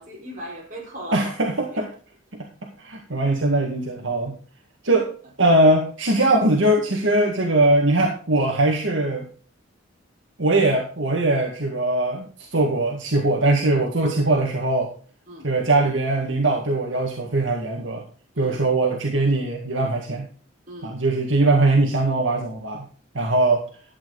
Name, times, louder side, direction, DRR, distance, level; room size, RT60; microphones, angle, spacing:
voice 1, 0.0-1.3 1.7-1.9 15.3-15.5 18.3-18.6 20.7-21.0, equal, 40° right, -2 dB, 4.8 m, -38 dB
voice 2, 1.1-1.8 2.3-4.4 4.8-5.1 5.4-9.3 10.4-14.9 15.4-18.0 18.4-20.3 20.8-22.9 23.1-23.6, right 2 dB, 65° right, 0 dB, 1.9 m, -21 dB
12.0 x 9.0 x 4.0 m, 0.40 s
head